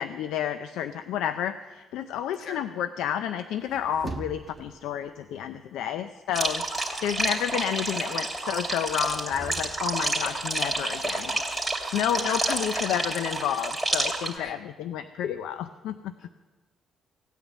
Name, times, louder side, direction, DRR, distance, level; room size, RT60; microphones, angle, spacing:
voice 1, 0.0-6.6 7.0-11.4 11.9-16.1, left 10 dB, 90° left, 11 dB, 0.5 m, -30 dB
sound 1, 3.4-4.9 9.0-12.2, right 3 dB, 35° right, 1.1 m, -43 dB
sound 2, 6.3-14.3, right 2 dB, 5° right, 2.7 m, -29 dB
voice 2, 12.3-12.8 14.3-14.6 16.2-16.3, left 5 dB, 70° left, 6 dB, 1.6 m, -39 dB
17.0 x 9.1 x 7.3 m, 1.3 s
cardioid pair, 90°, 0 cm